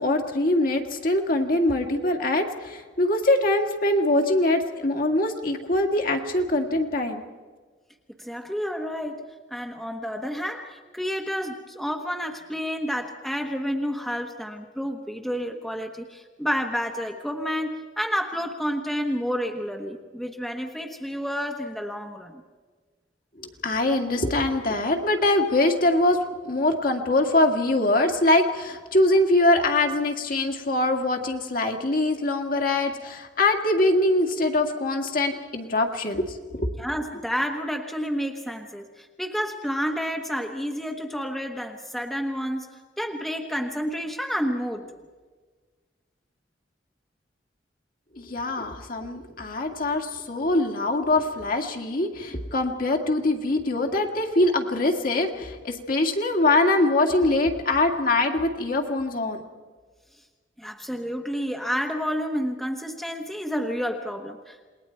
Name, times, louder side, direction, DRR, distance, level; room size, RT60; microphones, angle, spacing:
voice 1, 0.0-7.2 23.4-26.2 26.4-36.2 36.5-36.7 48.2-59.4, left 2 dB, 50° left, 3 dB, 2.0 m, -23 dB
voice 2, 8.2-22.4 36.8-44.9 60.6-64.7, equal, ahead, 3 dB, 1.1 m, -30 dB
28.0 x 20.5 x 4.5 m, 1.4 s
head